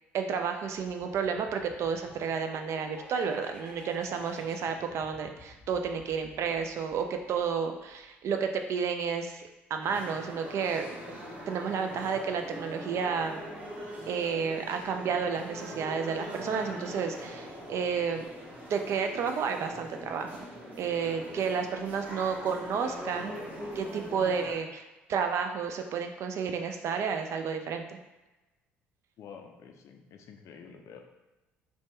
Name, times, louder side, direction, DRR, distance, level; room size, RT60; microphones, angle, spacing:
voice 1, 0.1-9.4 9.7-11.0 11.5-13.4 14.1-18.3 18.7-20.4 20.8-23.4 23.8-24.8 25.1-28.0, right 6 dB, 50° right, 5 dB, 0.4 m, -31 dB
sound 1, 0.7-8.3, left 3 dB, 10° left, 0.7 m, -52 dB
sound 2, 9.8-24.5, equal, 25° right, 0.9 m, -42 dB
voice 2, 29.2-31.0, left 6 dB, 55° left, 4 dB, 0.4 m, -49 dB
2.7 x 2.2 x 3.2 m, 1.1 s
hypercardioid pair, 55°, 6 cm